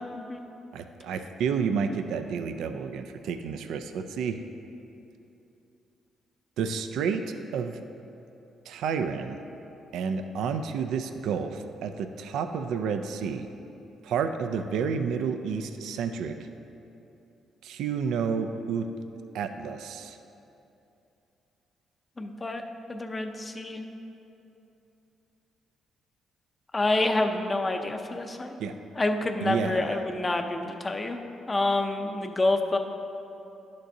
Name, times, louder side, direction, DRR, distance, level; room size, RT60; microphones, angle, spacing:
voice 1, 0.1-0.4 22.2-22.6 22.9-23.8 26.7-28.6 28.9-31.2 31.5-32.8, left 2 dB, 25° left, 5 dB, 0.6 m, -28 dB
voice 2, 0.7-4.4 6.6-7.8 8.7-9.4 9.9-13.5 14.0-16.4 17.6-18.9 19.3-20.2 28.6-28.7 29.4-30.0, right 6 dB, 80° right, 8 dB, 0.3 m, -30 dB
11.0 x 6.6 x 2.7 m, 2.8 s
cardioid pair, 90°, 0 cm